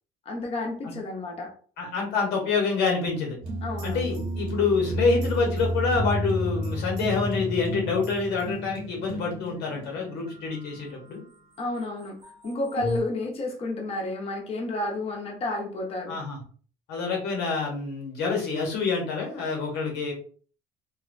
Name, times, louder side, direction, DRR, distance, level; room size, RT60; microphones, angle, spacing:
voice 1, 0.3-1.5 3.6-4.2 11.6-12.2 12.4-16.2, left 2 dB, 35° left, 0 dB, 0.8 m, -31 dB
voice 2, 1.8-3.4 3.8-11.2 16.1-16.4 16.9-20.1, left 4 dB, 90° left, 0 dB, 0.9 m, -27 dB
sound 1, 3.4-11.2 11.8-13.0, equal, 85° right, 1.2 m, -32 dB
2.7 x 2.1 x 2.5 m, 0.43 s
cardioid pair, 110°, 17 cm